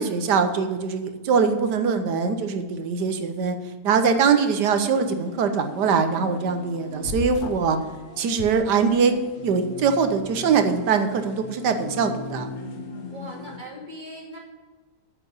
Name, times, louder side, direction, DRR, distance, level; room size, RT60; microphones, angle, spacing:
voice 1, 0.0-3.6 3.8-7.8 8.2-9.2 9.4-12.5, right 5 dB, 80° right, 8 dB, 1.5 m, -22 dB
sound 1, 4.9-13.6, left 4 dB, 55° left, 1.5 m, -40 dB
sound 2, 7.0-7.8 8.3-9.2, left 4 dB, 85° left, 0.4 m, -34 dB
voice 2, 13.1-14.4, equal, 25° right, -2 dB, 2.9 m, -39 dB
9.5 x 5.9 x 8.1 m, 1.3 s
omnidirectional pair, 1.8 m